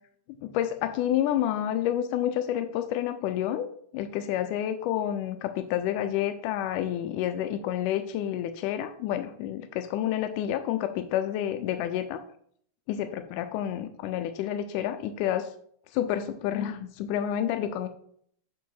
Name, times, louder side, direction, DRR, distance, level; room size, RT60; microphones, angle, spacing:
voice 1, 0.4-3.7 3.9-12.2 12.9-15.5 15.9-17.9, left 11 dB, 90° left, 9 dB, 2.1 m, -29 dB
8.4 x 6.1 x 4.6 m, 0.63 s
omnidirectional pair, 3.6 m